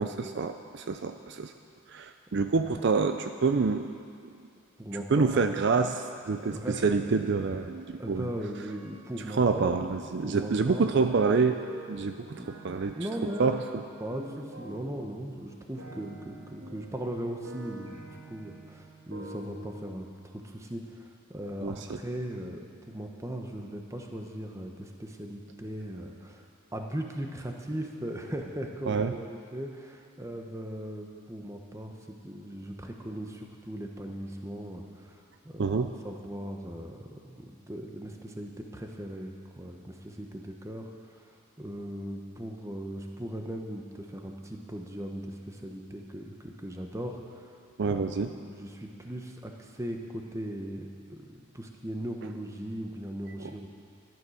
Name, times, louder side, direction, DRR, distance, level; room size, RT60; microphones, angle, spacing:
voice 1, 0.0-1.5 1.9-3.9 5.1-8.3 9.4-11.6 11.9-12.4 12.6-12.9 13.4-13.6 21.6-22.0 28.9-29.1 35.6-35.9 47.8-48.3 53.4-53.5, right 4 dB, 55° right, 7 dB, 0.4 m, -27 dB
voice 2, 4.8-5.4 6.4-7.1 8.0-9.9 10.2-11.0 12.4-12.5 12.9-13.6 14.0-26.4 26.7-35.7 36.0-47.6 47.8-53.7, right 1 dB, 15° right, 2 dB, 1.0 m, -38 dB
sound 1, 7.0-8.3 8.7-19.9, right 2 dB, 75° right, 1.9 m, -48 dB
13.0 x 10.5 x 6.4 m, 2.3 s
head